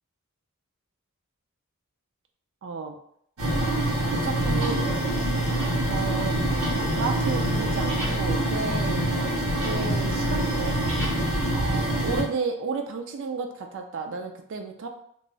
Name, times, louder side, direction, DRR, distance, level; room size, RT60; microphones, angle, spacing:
voice 1, 2.6-3.0 4.1-4.9 5.9-9.1 9.6-10.9 11.5-14.9, right 4 dB, 55° right, 4 dB, 0.4 m, -32 dB
sound 1, 3.4-12.2, right 1 dB, 75° right, 0.9 m, -25 dB
2.4 x 2.0 x 3.8 m, 0.69 s
head